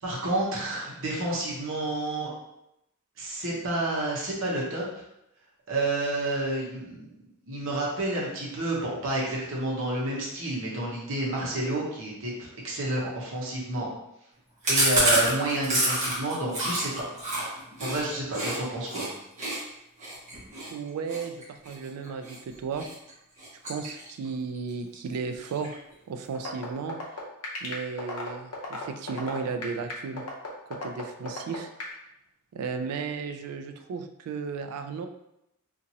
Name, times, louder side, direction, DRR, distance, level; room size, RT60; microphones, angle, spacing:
voice 1, 0.0-2.3 3.2-5.0 5.7-7.1 7.5-13.9 14.7-16.9 17.8-19.1, right 2 dB, 60° right, -4 dB, 0.9 m, -29 dB
Chewing mastication, 14.6-18.6 18.9-19.1 19.4-22.4 22.8-23.1 23.4-24.3 24.5-24.6 24.9-25.0 25.3-25.9, right 1 dB, 35° right, 1.0 m, -28 dB
voice 2, 20.7-22.9 23.7-25.8 26.1-27.1 27.6-30.2 30.7-31.7 32.5-35.1, right 5 dB, 85° right, 11 dB, 0.3 m, -34 dB
sound 1, 26.3-31.9, left 3 dB, 70° left, 0.6 m, -35 dB
2.8 x 2.5 x 2.7 m, 0.84 s
head